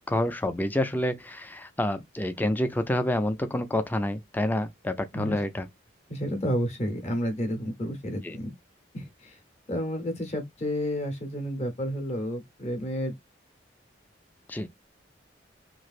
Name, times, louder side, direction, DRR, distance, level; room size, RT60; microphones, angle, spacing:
voice 1, 0.1-5.7 8.2-8.4 14.5-14.7, left 1 dB, 10° left, 0.4 m, -28 dB
voice 2, 6.1-8.5 8.9-9.4 9.7-13.1, equal, 35° left, 0.9 m, -31 dB
3.1 x 2.5 x 2.4 m
head